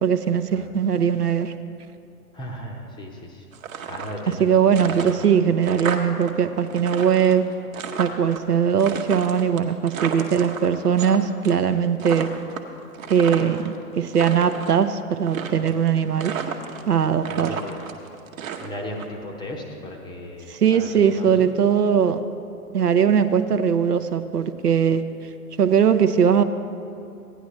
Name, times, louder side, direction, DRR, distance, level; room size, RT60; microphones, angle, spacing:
voice 1, 0.0-1.5 4.4-7.4 8.0-12.3 13.1-16.3 16.9-17.5 20.5-22.2 22.7-25.0 25.6-26.4, right 7 dB, 80° right, 9 dB, 0.7 m, -20 dB
voice 2, 2.3-3.5 3.9-4.9 17.3-17.8 18.6-21.5, left 1 dB, 10° left, 1 dB, 0.7 m, -36 dB
sound 1, 3.5-4.4 4.7-6.3 6.6-8.4 8.8-11.2 11.4-11.7 12.0-13.7 14.0-14.8 15.3-15.9 16.2-16.9 17.2-19.1, right 7 dB, 60° right, 1.0 m, -32 dB
15.5 x 10.0 x 3.1 m, 2.5 s
figure-of-eight pair, 110°, 46 cm